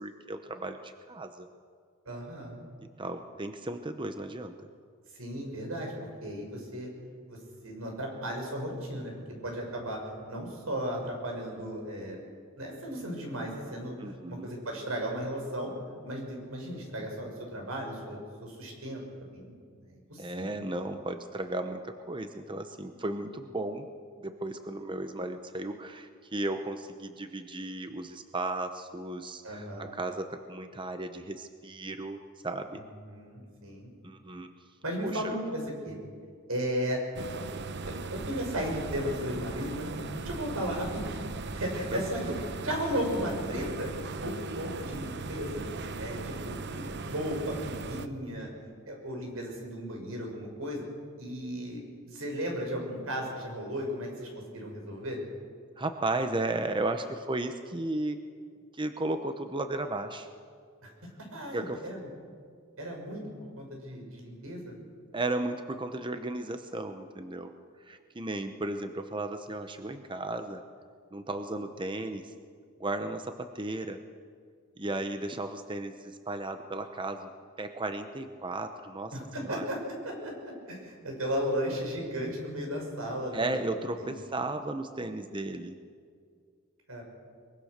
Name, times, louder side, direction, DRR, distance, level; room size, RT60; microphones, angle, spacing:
voice 1, 0.0-1.5 3.0-4.6 14.0-14.5 20.2-23.9 24.2-32.8 34.0-34.5 35.0-35.4 41.9-42.3 42.6-42.7 55.8-58.2 58.7-60.3 61.5-61.8 65.1-67.5 67.8-70.6 71.1-72.3 72.8-74.0 74.8-77.3 77.6-79.6 83.3-85.8, right 2 dB, 25° right, 7 dB, 0.8 m, -35 dB
voice 2, 2.0-2.6 5.2-5.9 6.2-6.9 7.3-7.4 7.6-12.2 12.6-15.7 16.0-19.0 19.3-19.6 19.9-20.7 29.4-29.9 32.7-33.9 34.8-36.0 36.5-37.0 37.3-37.4 37.9-42.3 42.6-43.9 44.2-45.7 46.0-48.5 48.9-50.8 51.2-55.2 60.8-60.9 61.3-62.1 62.8-63.2 63.6-64.7 74.8-74.9 79.1-79.8 80.0-83.6 84.0-84.2 86.9-87.0, equal, 85° right, 1 dB, 6.5 m, -35 dB
sound 1, 37.1-48.1, right 3 dB, 55° right, 0.9 m, -38 dB
23.0 x 23.0 x 6.7 m, 2.2 s
head